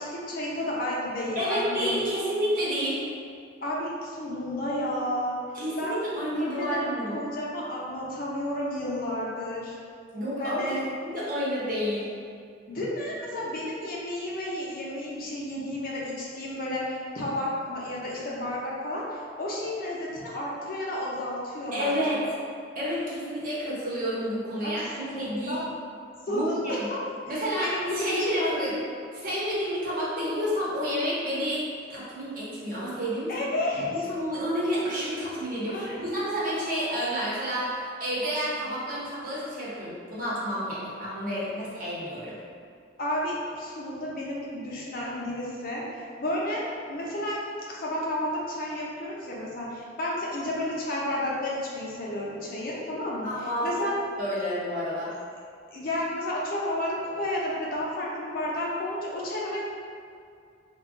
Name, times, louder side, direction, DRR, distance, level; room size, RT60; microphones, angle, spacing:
voice 1, 0.0-2.0 3.6-5.4 5.8-9.8 10.4-10.8 12.7-22.2 24.6-25.7 26.3-27.0 27.3-28.7 33.3-34.1 35.7-36.0 43.0-45.8 46.2-47.4 47.7-53.3 53.6-53.9 55.7-59.6, left 1 dB, 50° left, -4 dB, 0.6 m, -31 dB
voice 2, 1.4-3.0 5.5-7.2 10.1-12.1 21.7-22.2 22.7-25.6 26.3-26.9 27.3-28.7 29.2-31.6 31.9-33.5 33.9-42.4 53.2-53.7 54.2-55.1, equal, 50° right, -8 dB, 0.9 m, -30 dB
2.3 x 2.2 x 3.6 m, 2.3 s
head